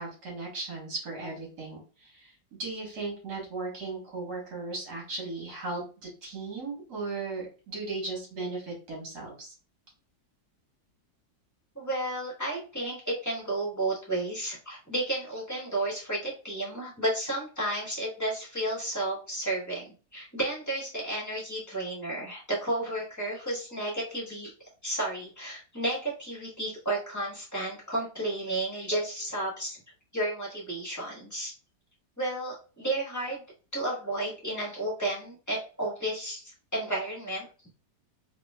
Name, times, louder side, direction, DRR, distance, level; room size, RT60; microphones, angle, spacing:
voice 1, 0.0-2.3 2.6-9.5, right 3 dB, 60° right, -2 dB, 2.0 m, -37 dB
voice 2, 11.7-29.8 30.1-31.5 32.2-33.4 33.7-37.5, right 1 dB, 10° left, -5 dB, 1.2 m, -32 dB
4.1 x 2.8 x 2.3 m, 0.36 s
omnidirectional pair, 2.0 m